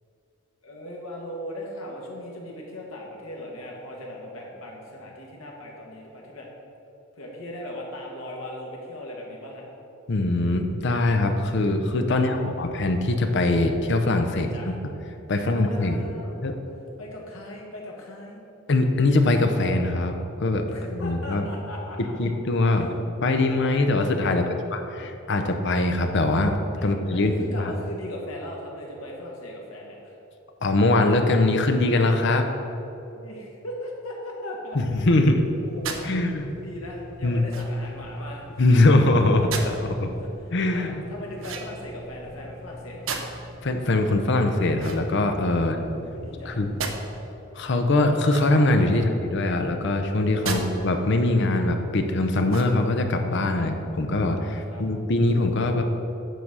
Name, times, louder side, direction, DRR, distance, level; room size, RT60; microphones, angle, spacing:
voice 1, 0.6-6.5 7.2-9.6 12.1-12.6 14.3-14.7 15.3-16.4 17.0-18.4 20.7-22.1 24.3-25.0 26.8-30.1 33.1-35.1 35.6-36.2 36.6-38.5 39.4-39.8 40.2-40.3 40.7-43.2 45.5-46.6 48.9-49.1 50.4-50.6 53.5-53.7 54.7-54.8, left 1 dB, 80° left, -2 dB, 1.6 m, -38 dB
voice 2, 10.1-14.7 15.3-16.0 16.4-16.5 18.7-20.6 20.9-21.5 22.2-26.6 26.8-27.7 30.6-32.4 34.7-35.4 36.0-36.5 37.2-37.4 38.6-40.1 40.5-41.0 43.6-45.8 46.5-46.7 47.5-55.8, left 2 dB, 55° left, 5 dB, 0.7 m, -22 dB
sound 1, 34.7-47.3, left 1 dB, 5° right, 1.3 m, -43 dB
sound 2, 35.8-36.1 37.5-37.9 39.5-39.8 41.4-42.0 43.1-43.5 44.7-45.6 46.8-47.0 48.2-48.8 50.4-50.7 51.2-51.3 52.4-53.0, right 5 dB, 70° right, 0.7 m, -34 dB
9.2 x 4.0 x 6.0 m, 2.9 s
head